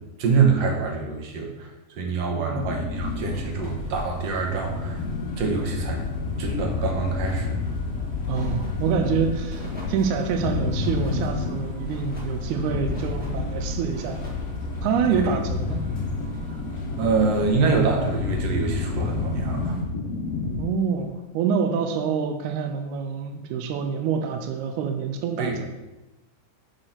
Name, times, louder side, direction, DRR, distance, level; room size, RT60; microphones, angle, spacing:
voice 1, 0.2-5.0 5.4-6.0 6.4-7.6 15.2-15.3 17.0-19.8 25.4-25.7, right 4 dB, 65° right, 2 dB, 2.0 m, -25 dB
voice 2, 2.3-2.9 8.3-14.2 14.8-15.9 20.6-25.7, right 6 dB, 80° right, 6 dB, 2.0 m, -26 dB
sound 1, 2.5-20.6, left 4 dB, 70° left, 1.4 m, -30 dB
sound 2, 2.9-19.8, left 2 dB, 35° left, 1.0 m, -37 dB
sound 3, 3.1-5.2 5.5-6.1 6.5-7.8 8.2-8.9 9.5-10.2 10.8-11.3 11.8-12.4 12.8-13.5 13.9-14.5, equal, 5° right, 0.8 m, -43 dB
6.5 x 4.7 x 5.7 m, 1.0 s
omnidirectional pair, 3.5 m